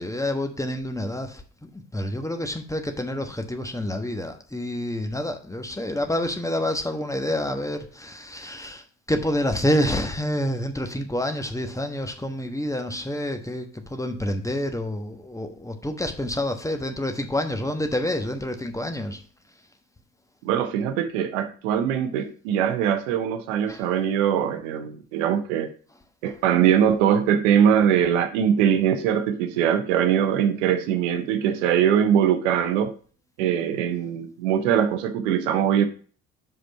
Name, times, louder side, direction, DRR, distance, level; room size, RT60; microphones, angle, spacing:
voice 1, 0.0-1.4 1.7-8.8 9.1-19.2 23.7-23.8 26.2-26.3, left 1 dB, 10° left, 1.2 m, -28 dB
voice 2, 20.4-25.7 26.2-32.9 33.4-35.9, right 9 dB, 65° right, 0.8 m, -22 dB
6.0 x 5.0 x 5.3 m
figure-of-eight pair, 50°, 39 cm